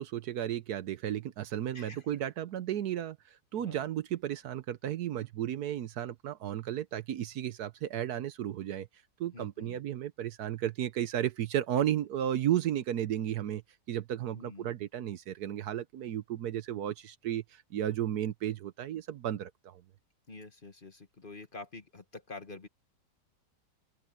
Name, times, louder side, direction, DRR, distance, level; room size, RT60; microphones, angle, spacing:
voice 1, 0.0-3.2 3.5-8.9 9.2-13.6 13.9-19.8, right 11 dB, 70° right, 1.2 m, -33 dB
voice 2, 1.7-2.2 3.6-3.9 9.3-9.8 14.3-14.7 20.3-22.7, left 3 dB, 35° left, 1.5 m, -47 dB
open air
omnidirectional pair, 1.8 m